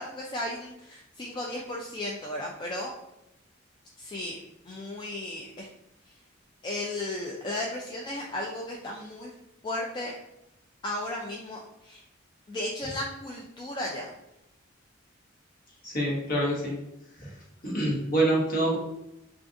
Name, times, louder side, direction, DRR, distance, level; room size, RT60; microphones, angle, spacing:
voice 1, 0.0-2.9 4.0-4.4 4.7-5.7 6.6-9.3 9.6-10.1 10.8-12.0 12.5-14.1, left 1 dB, 20° left, -2 dB, 0.3 m, -35 dB
voice 2, 15.8-16.8 17.2-17.3 17.6-18.8, right 1 dB, 45° left, -3 dB, 1.0 m, -26 dB
3.6 x 2.4 x 2.5 m, 0.88 s
head